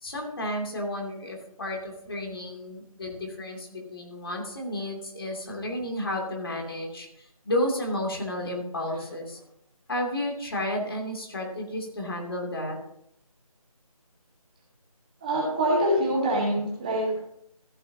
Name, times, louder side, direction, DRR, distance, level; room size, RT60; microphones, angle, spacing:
voice 1, 0.0-9.4 9.9-12.8, left 1 dB, 40° left, 0 dB, 2.6 m, -32 dB
voice 2, 15.2-17.2, right 1 dB, 15° right, -6 dB, 1.5 m, -25 dB
14.5 x 8.7 x 2.7 m, 0.73 s
figure-of-eight pair, 170°, 19 cm